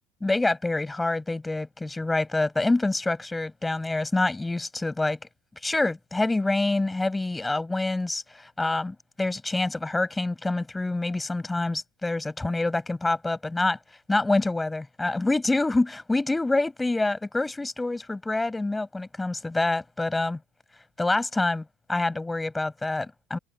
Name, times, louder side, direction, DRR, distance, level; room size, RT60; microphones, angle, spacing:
voice 1, 0.2-5.2 5.6-13.8 14.1-20.4 21.0-23.4, left 2 dB, 10° left, 6.7 m, -26 dB
cardioid pair, 135°, 0 cm